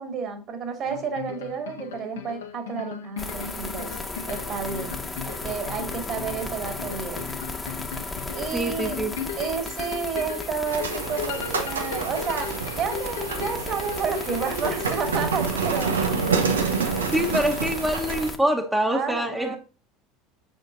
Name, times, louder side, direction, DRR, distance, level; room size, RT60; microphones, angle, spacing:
voice 1, 0.0-4.0 4.3-5.0 5.2-7.3 8.3-9.0 9.4-16.0 18.9-19.6, right 6 dB, 45° right, 2.5 m, -31 dB
sound 1, 0.9-15.0, left 7 dB, 75° left, 0.8 m, -37 dB
sound 2, 3.2-18.4, left 2 dB, 15° left, 1.3 m, -35 dB
voice 2, 8.5-9.2 16.1-16.2 17.1-19.6, right 1 dB, 5° right, 1.2 m, -25 dB
sound 3, 10.7-18.3, right 5 dB, 85° right, 0.9 m, -28 dB
8.1 x 6.4 x 2.6 m
figure-of-eight pair, 75°, 0 cm